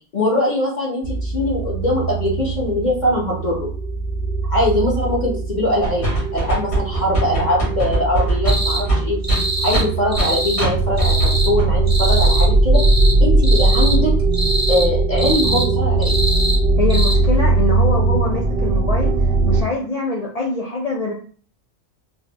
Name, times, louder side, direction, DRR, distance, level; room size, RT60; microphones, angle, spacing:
voice 1, 0.1-3.7 4.5-6.1 6.3-9.2 9.6-12.8 13.2-14.1 14.7-16.2, left 1 dB, 40° left, -5 dB, 1.0 m, -21 dB
sound 1, 1.0-19.6, right 3 dB, 60° right, 0.7 m, -19 dB
sound 2, 5.8-10.3 10.6-10.7 11.0-11.3 11.6-11.7, right 1 dB, 55° left, 1.8 m, -21 dB
sound 3, 8.5-8.8 9.2-9.8 10.1-10.7 11.0-11.5 11.9-12.5 12.7-13.2 13.4-14.0 14.3-14.9 15.2-15.7 16.0-16.6 16.9-17.1, right 1 dB, 15° right, 0.6 m, -24 dB
voice 2, 16.8-19.1 19.5-21.1, left 2 dB, 75° left, -3 dB, 0.3 m, -24 dB
3.7 x 2.0 x 2.8 m, 0.43 s
omnidirectional pair, 1.3 m